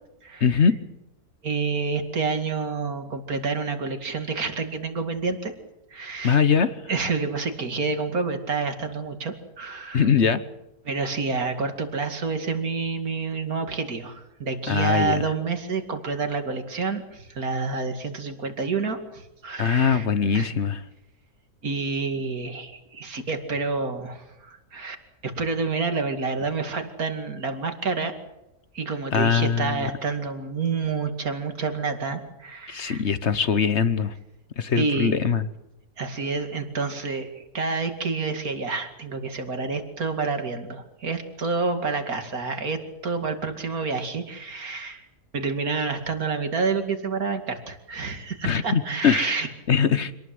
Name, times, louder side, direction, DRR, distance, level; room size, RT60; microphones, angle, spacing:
voice 1, 0.4-0.8 6.2-6.8 9.9-10.4 14.7-15.2 19.6-20.8 29.1-29.9 32.7-34.1 34.6-35.4 48.4-49.3 49.7-50.1, left 6 dB, 50° left, 13 dB, 1.2 m, -22 dB
voice 2, 1.4-5.5 5.9-6.4 6.9-10.1 10.8-20.1 20.3-20.5 21.6-25.0 25.2-28.1 28.7-33.0 34.7-35.1 36.0-45.1 45.3-49.5, right 4 dB, 65° right, 6 dB, 2.8 m, -28 dB
26.0 x 19.0 x 7.9 m, 0.91 s
omnidirectional pair, 1.6 m